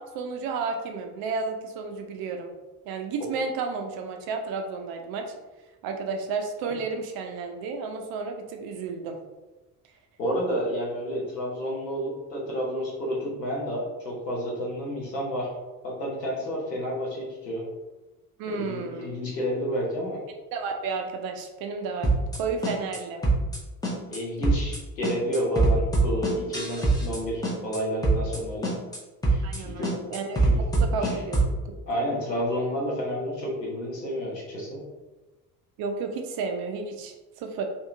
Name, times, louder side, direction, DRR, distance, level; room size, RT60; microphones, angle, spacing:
voice 1, 0.0-2.5 2.9-5.3 5.8-9.2 18.4-19.1 20.3-23.2 26.8-26.9 29.4-30.4 30.7-31.4 31.7-31.8 35.8-37.6, right 4 dB, 50° right, 4 dB, 0.5 m, -32 dB
voice 2, 10.2-15.5 15.8-17.6 18.5-20.2 24.1-28.7 29.3-29.9 30.4-30.6 31.0-31.2 31.9-34.8, equal, 85° left, -4 dB, 0.8 m, -30 dB
sound 1, 22.0-22.4 22.6-23.0 23.2-23.6 23.8-24.2 24.4-24.8 25.0-27.2 27.4-27.8 28.0-28.4 28.6-29.0 29.2-29.6 29.8-31.5, right 2 dB, 10° left, 0.7 m, -23 dB
2.8 x 2.7 x 2.3 m, 1.1 s
figure-of-eight pair, 50°, 47 cm